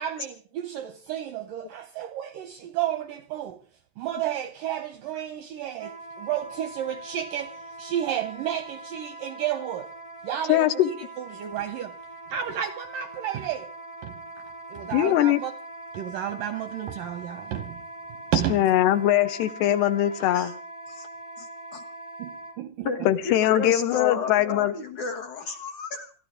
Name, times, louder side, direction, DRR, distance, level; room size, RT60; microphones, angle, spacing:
voice 1, 0.0-3.6 4.0-9.9 10.2-12.0 12.3-13.7 14.0-14.2 14.7-15.5 15.9-17.8 18.3-18.6 22.2-23.1, right 11 dB, 75° right, 2.0 m, -32 dB
Wind instrument woodwind instrument, 5.8-22.6, right 2 dB, 40° left, 0.4 m, -42 dB
voice 2, 10.5-10.9 14.9-15.4 18.5-20.5 23.1-24.7, left 13 dB, 80° left, 3.0 m, -21 dB
voice 3, 21.4-21.8 22.8-26.1, left 5 dB, 60° left, 2.1 m, -32 dB
28.0 x 12.0 x 3.6 m
omnidirectional pair, 4.8 m